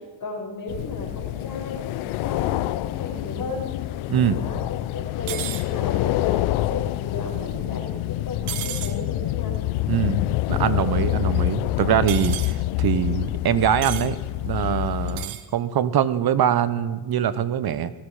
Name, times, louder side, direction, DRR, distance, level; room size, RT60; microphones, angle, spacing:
voice 1, 0.2-1.8 2.2-3.7 4.3-9.6 11.0-11.3, left 3 dB, 40° left, 0 dB, 5.6 m, -35 dB
sound 1, 0.7-15.3, left 16 dB, 85° left, 0.7 m, -26 dB
sound 2, 5.3-5.6 8.5-8.9 12.1-12.5 13.8-14.1 15.1-15.4, right 12 dB, 85° right, 1.3 m, -32 dB
voice 2, 9.9-14.2 14.4-17.9, right 9 dB, 50° right, 15 dB, 1.0 m, -23 dB
19.0 x 15.0 x 5.0 m, 1.3 s
cardioid pair, 100°, 48 cm